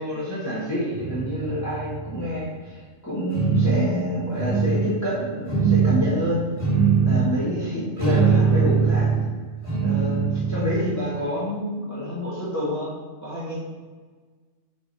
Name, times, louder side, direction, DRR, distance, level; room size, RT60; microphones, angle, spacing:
voice 1, 0.0-6.4 7.0-9.1 9.8-12.9 13.2-13.6, equal, 15° left, -9 dB, 1.4 m, -28 dB
sound 1, 0.9-2.5 3.3-3.9 4.3-4.9 5.5-6.1 6.6-7.3 8.0-9.3 9.6-10.8, right 6 dB, 30° right, 2.0 m, -21 dB
6.0 x 4.0 x 4.1 m, 1.4 s
omnidirectional pair, 1.3 m